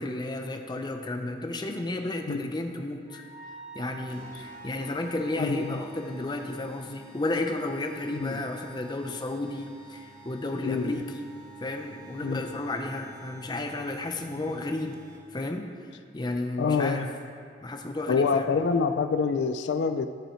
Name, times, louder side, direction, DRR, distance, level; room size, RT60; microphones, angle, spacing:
voice 1, 0.0-3.2 3.7-11.3 11.6-15.0 15.3-15.7 16.1-17.1 17.6-18.5, left 2 dB, 25° left, 4 dB, 0.6 m, -32 dB
Wind instrument woodwind instrument, 3.0-13.8, right 1 dB, 40° right, 2.6 m, -50 dB
sound 1, 4.1-15.5, right 2 dB, 5° left, 1.6 m, -53 dB
voice 2, 5.4-5.8 8.1-8.4 10.6-11.1 12.2-12.4 16.6-17.1 18.1-20.1, left 5 dB, 75° left, 9 dB, 0.4 m, -26 dB
14.5 x 5.5 x 4.4 m, 2.3 s
head